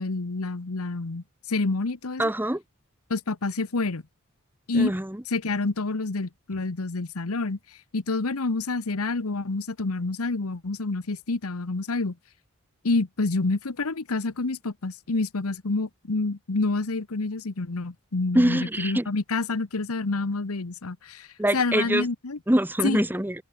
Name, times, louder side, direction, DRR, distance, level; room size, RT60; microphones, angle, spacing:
voice 1, 0.0-2.3 3.1-4.0 4.7-4.9 5.3-7.6 7.9-12.1 12.8-21.3 21.5-22.4 22.8-23.0, left 3 dB, 90° left, 1.1 m, -28 dB
voice 2, 2.2-2.6 4.7-5.2 18.3-19.1 21.4-22.0 22.5-23.3, right 1 dB, 10° right, 1.2 m, -24 dB
head